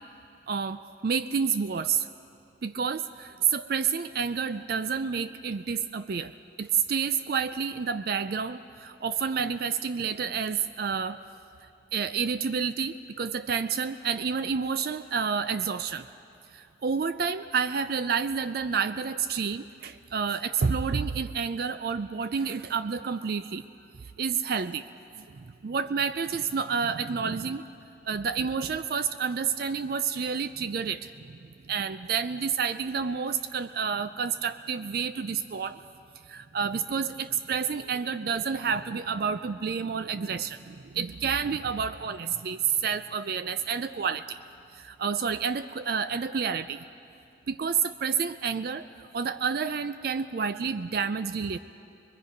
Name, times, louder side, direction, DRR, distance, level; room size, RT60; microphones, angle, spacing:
voice 1, 0.5-2.1 2.6-6.3 6.6-11.2 11.9-16.1 16.5-23.6 24.2-24.9 25.2-27.6 28.1-35.8 36.3-44.4 44.7-46.8 47.5-51.6, right 6 dB, 50° right, 12 dB, 0.4 m, -29 dB
24.0 x 22.0 x 5.2 m, 2.6 s
head